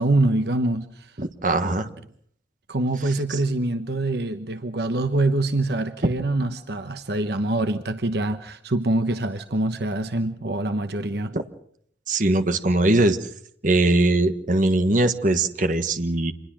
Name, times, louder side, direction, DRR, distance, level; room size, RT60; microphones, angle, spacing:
voice 1, 0.0-1.2 2.7-11.3, right 2 dB, 60° right, 1.1 m, -25 dB
voice 2, 1.2-1.9 3.3-3.4 11.3-11.4 12.1-13.3 13.6-16.3, right 2 dB, 45° right, 1.3 m, -21 dB
26.5 x 20.5 x 6.2 m
head